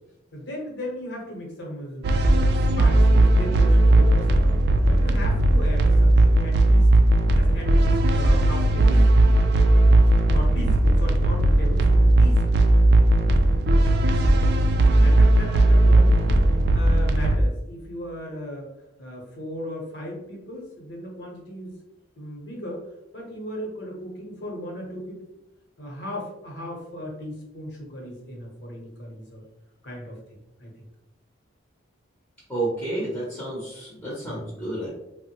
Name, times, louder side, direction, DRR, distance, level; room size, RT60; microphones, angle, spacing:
voice 1, 0.3-2.3 2.8-4.6 4.9-6.9 7.3-9.5 10.3-12.6 15.0-16.5 16.7-18.7 19.0-21.8 22.2-22.9 23.1-25.2 25.8-29.4 29.8-30.7 34.2-34.7, equal, 60° left, -1 dB, 0.9 m, -37 dB
sound 1, 2.0-17.4, right 1 dB, 55° right, 0.3 m, -17 dB
voice 2, 32.5-34.9, right 2 dB, 5° left, -7 dB, 0.7 m, -30 dB
3.3 x 2.1 x 2.9 m, 0.87 s
head